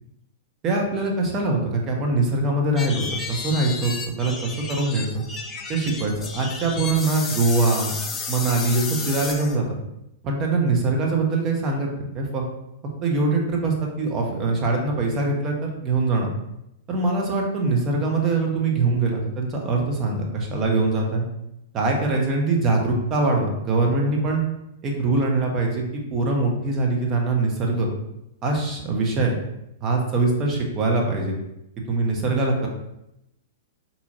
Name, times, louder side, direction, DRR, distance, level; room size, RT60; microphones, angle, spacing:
voice 1, 0.6-5.2 5.7-7.9 8.3-9.8 10.2-11.9 12.1-12.4 13.0-16.3 16.9-21.3 21.7-24.4 24.8-27.9 28.4-29.3 29.8-31.4 31.9-32.7, right 3 dB, 30° right, 1 dB, 0.9 m, -23 dB
sound 1, 2.8-9.6, left 4 dB, 25° left, 0.5 m, -32 dB
4.2 x 2.8 x 2.8 m, 0.85 s
figure-of-eight pair, 100°, 0 cm